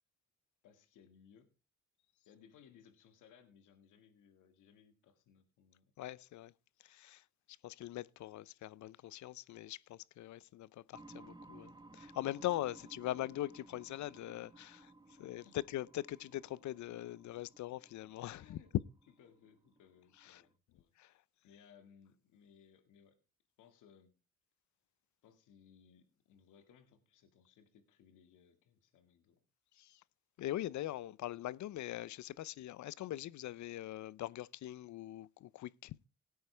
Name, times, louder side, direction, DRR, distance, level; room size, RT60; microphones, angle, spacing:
voice 1, 0.6-1.5 2.3-5.9 12.8-12.9 15.2-15.7 18.3-18.7 19.2-20.9 21.4-23.2 23.6-24.1 25.2-29.4, left 8 dB, 85° left, 2.0 m, -64 dB
voice 2, 6.0-6.5 6.8-14.9 15.2-18.6 20.2-20.4 21.0-21.1 29.8-30.0 30.4-36.0, left 14 dB, 70° left, 0.6 m, -42 dB
sound 1, 10.9-20.5, right 2 dB, 15° right, 1.1 m, -58 dB
17.5 x 9.4 x 3.3 m
cardioid pair, 90°, 30 cm